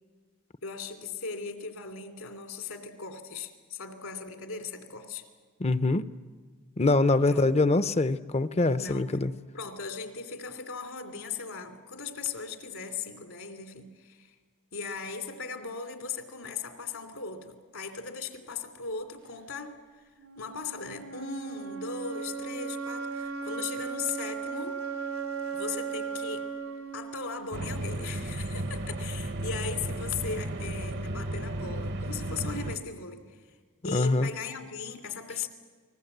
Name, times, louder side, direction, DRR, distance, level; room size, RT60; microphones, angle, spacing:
voice 1, 0.6-5.2 7.3-7.5 8.8-9.2 9.5-14.3 14.7-19.8 20.4-24.8 25.5-26.5 26.9-33.6 33.8-35.5, left 5 dB, 75° left, 7 dB, 2.8 m, -38 dB
voice 2, 5.6-6.1 6.8-9.3 33.9-34.3, left 2 dB, 30° left, 13 dB, 0.7 m, -24 dB
sound 1, 20.2-28.2, right 6 dB, 90° right, 3.0 m, -37 dB
sound 2, 27.5-32.8, right 1 dB, 55° right, 1.0 m, -34 dB
29.0 x 20.0 x 8.0 m, 1.5 s
head